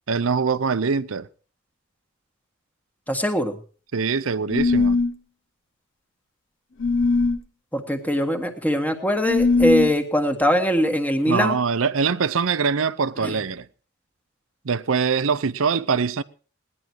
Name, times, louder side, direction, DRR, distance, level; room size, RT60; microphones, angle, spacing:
voice 1, 0.1-1.3 3.9-5.0 11.3-13.7 14.6-16.2, right 5 dB, 70° right, 0.7 m, -23 dB
voice 2, 3.1-3.6 7.7-11.6 13.2-13.3, equal, 10° left, 1.6 m, -22 dB
sound 1, 4.5-5.1 6.8-7.4 9.2-9.9, left 3 dB, 65° left, 1.0 m, -20 dB
18.0 x 11.0 x 4.6 m
head